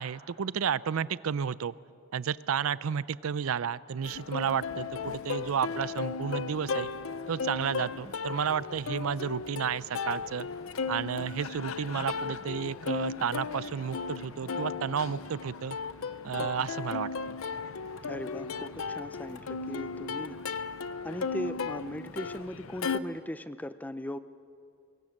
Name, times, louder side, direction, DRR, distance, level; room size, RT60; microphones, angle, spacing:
voice 1, 0.0-1.7 2.1-6.9 7.3-10.5 10.9-15.8 16.2-17.4, right 7 dB, 85° right, 19 dB, 0.5 m, -32 dB
Plucked string instrument, 4.0-23.0, left 4 dB, 80° left, 0.6 m, -36 dB
voice 2, 18.1-20.4 21.0-24.2, left 1 dB, 10° left, 12 dB, 0.5 m, -38 dB
24.5 x 22.0 x 6.5 m, 2.4 s
head